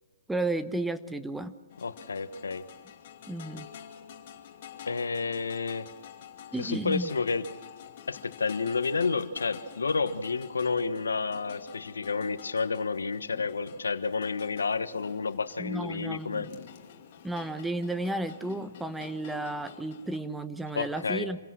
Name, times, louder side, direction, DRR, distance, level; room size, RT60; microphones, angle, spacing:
voice 1, 0.3-1.5 3.3-3.7 6.5-7.1 15.6-16.5 17.2-21.4, right 2 dB, 5° right, 10 dB, 1.0 m, -33 dB
sound 1, 1.7-20.2, left 9 dB, 50° left, 2.6 m, -49 dB
voice 2, 1.8-2.6 4.9-5.9 6.6-7.4 8.1-16.5 20.7-21.3, left 4 dB, 85° left, 12 dB, 1.3 m, -30 dB
27.0 x 16.5 x 6.2 m, 1.4 s
hypercardioid pair, 135°, 0 cm